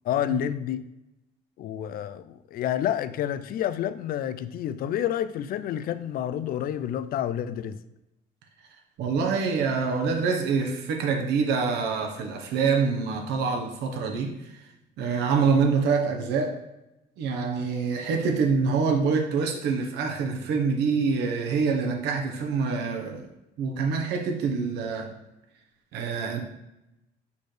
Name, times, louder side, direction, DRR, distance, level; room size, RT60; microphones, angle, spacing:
voice 1, 0.0-0.8 1.6-7.8, left 10 dB, 60° left, 13 dB, 0.5 m, -29 dB
voice 2, 9.0-14.6 15.0-16.6 17.2-23.3 23.6-25.1 25.9-26.4, right 5 dB, 80° right, 3 dB, 1.0 m, -26 dB
8.3 x 4.2 x 3.3 m, 0.91 s
cardioid pair, 110°, 17 cm